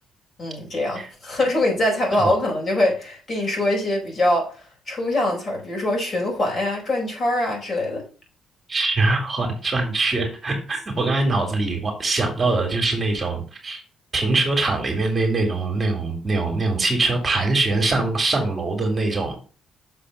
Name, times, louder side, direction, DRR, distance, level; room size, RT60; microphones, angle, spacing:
voice 1, 0.4-8.0, left 1 dB, 40° left, 4.6 m, -23 dB
voice 2, 8.7-13.8 14.1-19.4, right 3 dB, 30° right, 2.6 m, -23 dB
6.8 x 4.2 x 6.3 m
cardioid pair, 90°, 0 cm